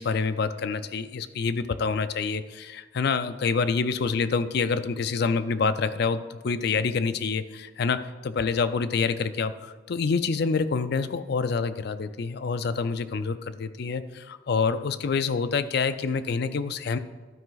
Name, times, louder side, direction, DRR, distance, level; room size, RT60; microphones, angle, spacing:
voice 1, 0.0-17.0, left 5 dB, 60° left, 12 dB, 0.4 m, -27 dB
12.0 x 4.9 x 3.9 m, 1.3 s
head